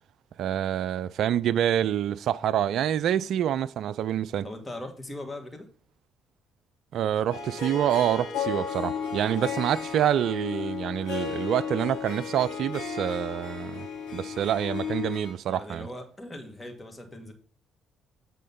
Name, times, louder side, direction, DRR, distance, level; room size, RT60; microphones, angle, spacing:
voice 1, 0.4-4.5 6.9-13.9 14.1-15.9, right 10 dB, 60° right, 0.3 m, -27 dB
voice 2, 4.4-5.7 15.5-17.3, left 1 dB, 20° left, 2.1 m, -40 dB
Harp, 7.3-15.3, left 6 dB, 80° left, 2.7 m, -34 dB
8.3 x 3.8 x 5.4 m
figure-of-eight pair, 45°, 0 cm